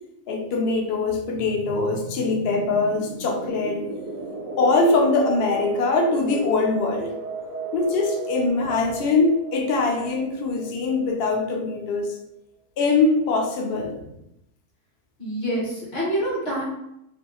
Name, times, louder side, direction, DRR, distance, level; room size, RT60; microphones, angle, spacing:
voice 1, 0.3-3.8 4.6-7.1 7.7-12.2 12.8-13.9, left 3 dB, 85° left, 2 dB, 0.5 m, -22 dB
sound 1, 1.1-11.6, right 2 dB, 70° right, 0.8 m, -35 dB
voice 2, 15.2-16.6, right 1 dB, 50° left, -5 dB, 1.0 m, -26 dB
2.6 x 2.3 x 2.8 m, 0.82 s
omnidirectional pair, 1.6 m